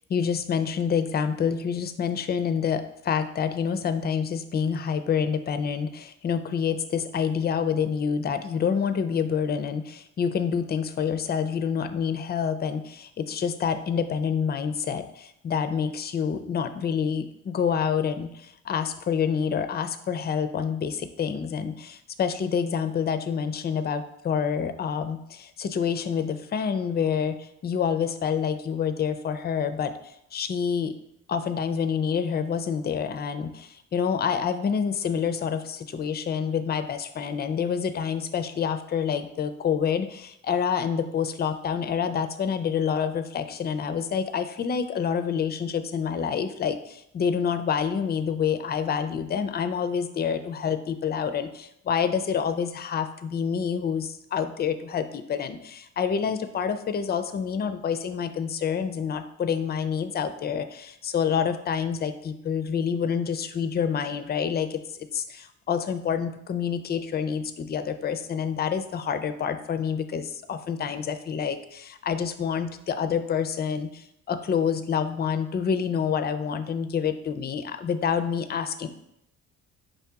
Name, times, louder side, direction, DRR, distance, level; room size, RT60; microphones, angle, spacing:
voice 1, 0.1-30.9 31.3-78.9, left 7 dB, 35° left, 10 dB, 0.4 m, -27 dB
5.2 x 2.8 x 3.5 m, 0.78 s
cardioid pair, 90°, 30 cm